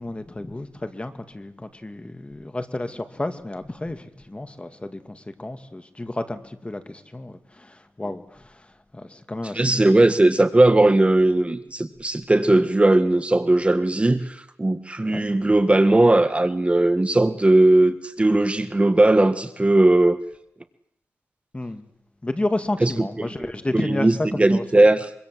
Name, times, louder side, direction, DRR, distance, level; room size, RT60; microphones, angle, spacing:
voice 1, 0.0-8.7 8.9-10.0 15.0-15.4 21.5-21.9 22.2-24.6, left 2 dB, 25° left, 2.4 m, -31 dB
voice 2, 9.5-20.2 22.8-22.9 23.2-25.1, right 2 dB, 25° right, 1.6 m, -18 dB
25.0 x 24.5 x 7.9 m
wide cardioid pair, 85°, 5 cm